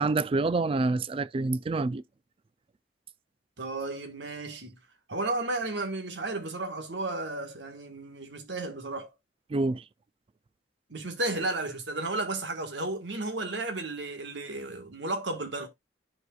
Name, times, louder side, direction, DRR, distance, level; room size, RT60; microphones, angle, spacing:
voice 1, 0.0-2.0 9.5-9.8, right 3 dB, 30° right, 0.4 m, -27 dB
voice 2, 3.6-4.8 5.1-9.1 10.9-15.7, right 2 dB, 90° right, 1.6 m, -33 dB
10.5 x 4.7 x 2.4 m
head